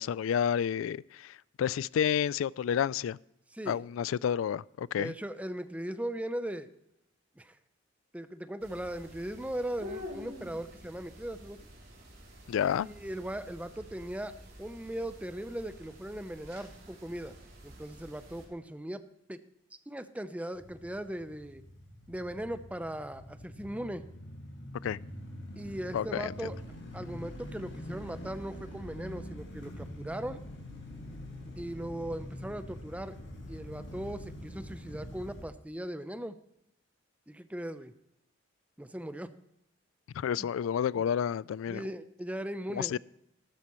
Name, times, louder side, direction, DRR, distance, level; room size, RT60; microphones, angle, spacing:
voice 1, 0.0-3.2 3.7-5.1 12.5-12.9 24.8-25.0 25.9-26.3 40.1-41.9 42.7-43.0, left 8 dB, 90° left, 0.3 m, -30 dB
voice 2, 3.5-3.8 5.0-6.7 7.4-7.5 8.1-11.7 12.8-17.4 17.6-19.0 19.3-19.4 19.9-21.6 22.1-24.0 25.6-26.6 26.9-30.4 31.6-33.2 33.5-36.4 37.3-37.9 38.8-39.3 40.4-40.5 40.9-41.0 41.7-42.9, right 1 dB, 5° right, 0.6 m, -38 dB
sound 1, 8.6-18.5, left 1 dB, 50° right, 4.0 m, -49 dB
sound 2, 20.5-35.4, left 1 dB, 65° left, 4.8 m, -44 dB
14.0 x 13.0 x 3.1 m
head